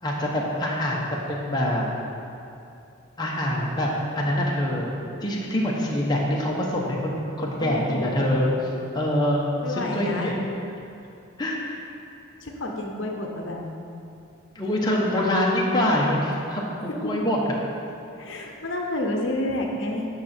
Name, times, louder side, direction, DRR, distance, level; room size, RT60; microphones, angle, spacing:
voice 1, 0.0-1.8 3.2-3.9 4.1-4.9 5.2-8.5 8.9-9.4 9.8-10.4 11.4-11.6 14.5-17.4, left 1 dB, 20° left, -4 dB, 0.9 m, -25 dB
voice 2, 7.6-8.5 9.6-10.4 12.4-13.7 16.9-17.1 18.2-20.1, left 1 dB, 65° left, 1 dB, 0.8 m, -29 dB
9.5 x 5.8 x 4.3 m, 2.6 s
head